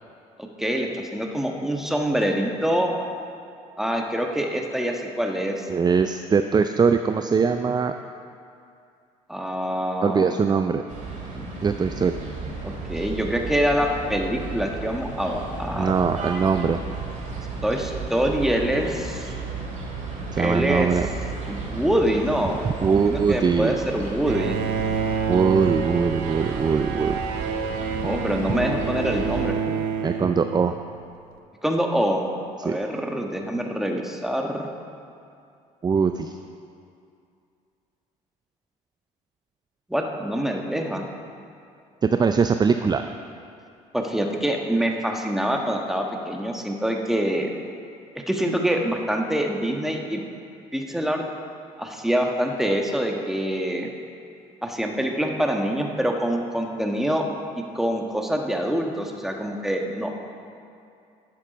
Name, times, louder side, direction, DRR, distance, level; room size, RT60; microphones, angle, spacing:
voice 1, 0.6-2.9 3.8-5.7 9.3-10.3 11.3-11.5 12.6-16.0 17.6-19.3 20.4-20.9 21.5-22.6 23.0-24.6 28.0-29.8 31.6-32.3 32.6-34.7 39.9-41.0 43.9-47.5 48.3-50.2 50.7-51.2 51.8-53.9 54.6-57.2 57.7-60.1, equal, ahead, 2 dB, 1.4 m, -25 dB
voice 2, 5.7-7.9 10.0-10.8 11.6-12.2 15.8-16.8 20.3-21.1 22.6-23.8 25.3-27.2 30.0-30.8 32.6-32.8 35.8-36.4 42.0-43.1, right 5 dB, 25° right, 8 dB, 0.4 m, -21 dB
sound 1, 10.9-29.5, right 3 dB, 50° right, 2.3 m, -34 dB
Bowed string instrument, 24.3-31.0, right 6 dB, 65° right, 0.7 m, -29 dB
11.0 x 7.4 x 5.1 m, 2.5 s
hypercardioid pair, 65°, 17 cm